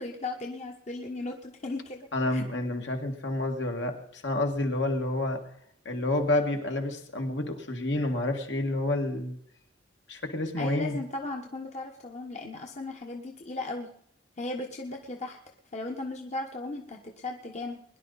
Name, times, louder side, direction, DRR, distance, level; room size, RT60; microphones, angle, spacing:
voice 1, 0.0-2.4 10.6-13.9 14.4-15.4 15.7-17.8, left 2 dB, 35° left, 1 dB, 1.3 m, -36 dB
voice 2, 2.1-5.4 5.9-9.4 10.1-11.0, left 2 dB, 65° left, 3 dB, 2.2 m, -29 dB
22.0 x 11.0 x 4.2 m, 0.66 s
head